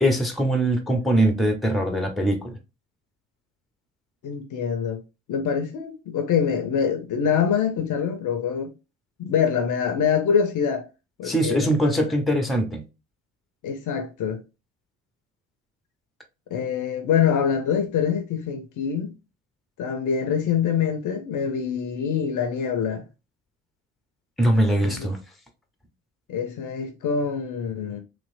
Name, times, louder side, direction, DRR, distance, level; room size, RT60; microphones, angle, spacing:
voice 1, 0.0-2.5 11.2-12.8 24.4-25.2, right 1 dB, ahead, 0.7 m, -22 dB
voice 2, 4.2-5.0 5.3-8.7 9.2-10.9 11.2-12.0 13.6-14.4 16.5-19.2 19.8-23.0 24.8-25.1 26.3-28.0, left 7 dB, 45° left, 0.7 m, -25 dB
3.0 x 3.0 x 2.5 m
figure-of-eight pair, 45°, 43 cm